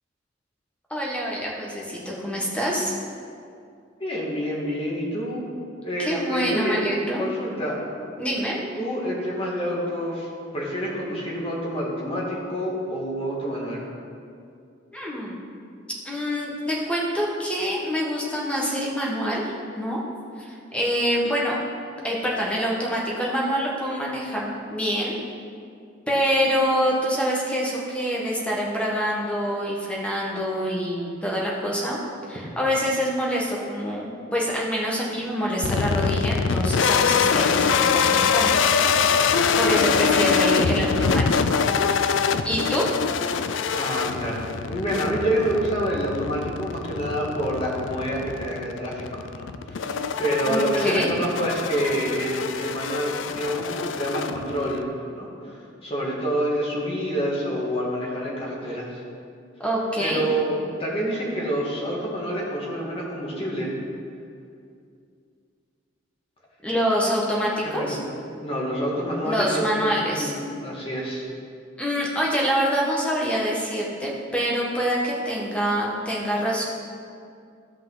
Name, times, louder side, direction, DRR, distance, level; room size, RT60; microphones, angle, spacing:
voice 1, 0.9-2.9 6.0-7.3 8.2-8.6 14.9-15.4 16.0-19.4 19.7-20.0 20.4-21.6 22.0-25.1 26.1-32.0 32.3-39.2 39.6-41.6 42.4-42.8 50.5-51.2 59.6-60.2 66.6-68.0 69.2-70.3 71.8-76.6, equal, 5° left, -4 dB, 1.6 m, -26 dB
voice 2, 4.0-5.5 5.8-6.8 7.2-7.8 8.8-10.3 10.5-13.8 43.7-59.0 60.0-63.7 67.6-68.0 68.4-71.3, equal, 30° left, -4 dB, 2.1 m, -27 dB
sound 1, 35.6-54.8, left 6 dB, 80° left, 0.4 m, -24 dB
15.5 x 5.4 x 4.0 m, 2.4 s
head